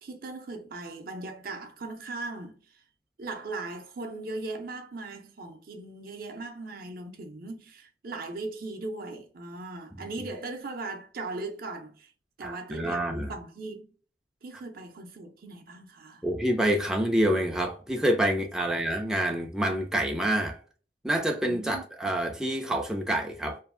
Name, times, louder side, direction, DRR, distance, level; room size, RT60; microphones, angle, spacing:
voice 1, 0.0-2.8 3.2-12.1 12.4-13.9 14.4-16.2 21.4-21.8, right 2 dB, 55° right, 0.5 m, -38 dB
voice 2, 12.4-13.3 16.2-20.6 21.0-23.6, right 1 dB, 5° right, 0.3 m, -27 dB
2.6 x 2.3 x 2.4 m
head